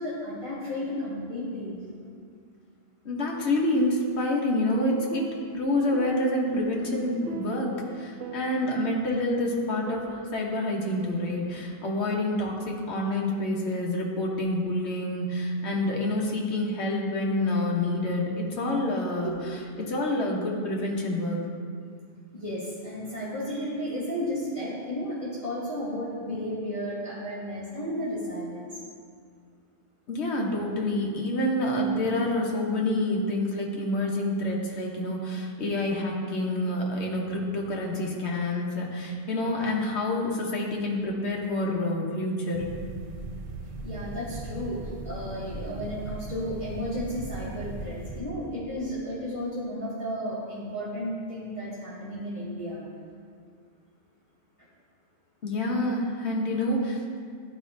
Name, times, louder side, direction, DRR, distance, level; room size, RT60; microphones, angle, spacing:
voice 1, 0.0-1.8 19.2-19.3 22.3-28.7 43.8-52.8 54.6-54.7, equal, 25° left, -10 dB, 1.4 m, -33 dB
voice 2, 3.0-5.3 5.5-19.3 19.8-21.5 30.1-42.7 55.4-57.2, left 1 dB, 65° left, -1 dB, 1.3 m, -27 dB
sound 1, 4.7-11.7, right 3 dB, 90° right, 1.2 m, -42 dB
sound 2, 42.5-48.2, right 2 dB, 60° right, 0.3 m, -38 dB
11.5 x 4.5 x 2.6 m, 2.1 s
omnidirectional pair, 1.2 m